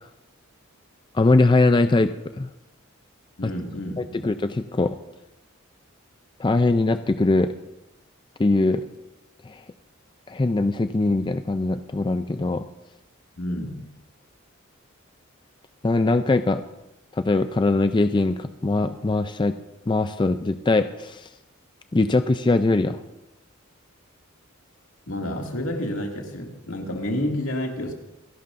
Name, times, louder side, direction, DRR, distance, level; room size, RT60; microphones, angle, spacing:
voice 1, 1.1-2.1 2.4-2.5 4.0-5.0 6.4-7.5 8.4-8.8 9.5-9.6 10.3-12.6 15.8-16.6 17.1-19.5 19.9-21.3 21.9-23.0, left 2 dB, 20° left, 10 dB, 0.4 m, -21 dB
voice 2, 3.4-4.2 13.4-13.9 25.1-27.9, left 1 dB, 90° left, 1 dB, 2.4 m, -29 dB
27.5 x 11.0 x 2.6 m, 0.94 s
head